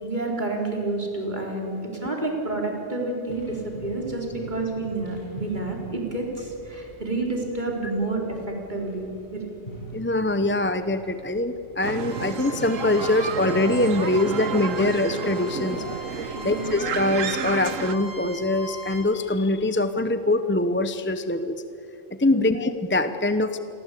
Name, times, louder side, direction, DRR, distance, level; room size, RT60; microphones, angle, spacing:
voice 1, 0.0-9.5 16.3-16.7 22.3-22.5, right 2 dB, 35° right, 0 dB, 4.3 m, -29 dB
sound 1, 3.3-19.3, equal, 40° left, 6.7 m, -45 dB
voice 2, 9.9-21.6 22.2-23.6, left 2 dB, 10° left, 10 dB, 0.7 m, -23 dB
sound 2, 11.8-17.9, right 6 dB, 85° right, 1.5 m, -31 dB
Bowed string instrument, 12.0-19.0, equal, 55° right, 8.5 m, -41 dB
28.0 x 23.0 x 8.5 m, 2.9 s
omnidirectional pair, 1.3 m